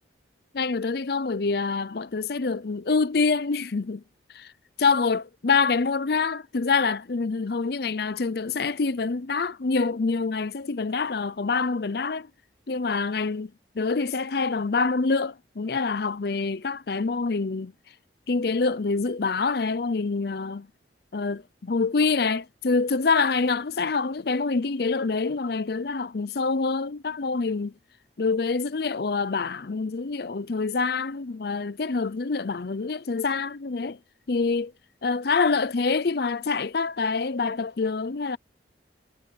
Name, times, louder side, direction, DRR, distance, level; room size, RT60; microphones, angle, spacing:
voice 1, 0.5-4.0 4.3-4.5 4.8-12.3 12.7-13.5 13.8-17.7 18.3-20.7 21.1-27.7 28.2-34.0 34.3-34.7 35.0-38.4, left 4 dB, 55° left, 0.6 m, -26 dB
head